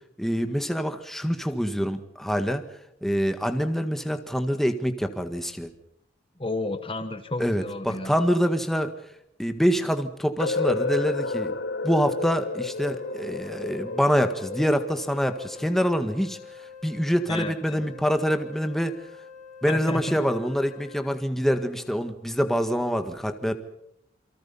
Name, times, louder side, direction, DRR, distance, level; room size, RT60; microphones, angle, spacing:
voice 1, 0.2-2.6 3.0-5.7 7.4-8.9 9.4-11.6 11.8-16.4 16.8-18.9 19.6-23.5, equal, ahead, 7 dB, 1.7 m, -25 dB
voice 2, 6.4-8.1 17.3-17.9 19.7-20.2, left 2 dB, 30° left, 9 dB, 1.3 m, -32 dB
sound 1, 10.4-16.3, left 3 dB, 65° left, 0.9 m, -31 dB
Wind instrument woodwind instrument, 12.0-21.2, left 5 dB, 40° right, 6.2 m, -45 dB
28.0 x 23.5 x 5.6 m, 0.77 s
head